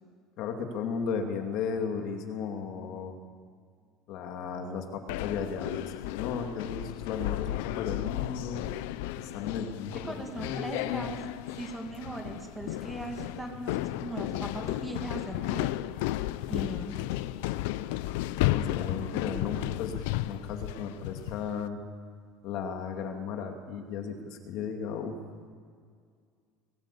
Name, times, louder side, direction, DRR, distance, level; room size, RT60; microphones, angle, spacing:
voice 1, 0.4-3.2 4.1-8.6 9.2-10.0 10.4-11.1 18.4-21.8 22.4-25.2, left 6 dB, 50° left, 4 dB, 2.4 m, -35 dB
sound 1, 5.1-21.6, left 15 dB, 90° left, 0.6 m, -33 dB
voice 2, 9.9-11.2 11.5-15.7 16.5-17.0, right 2 dB, 5° right, 2 dB, 2.4 m, -39 dB
24.0 x 17.5 x 8.5 m, 2.1 s
cardioid pair, 170°, 0 cm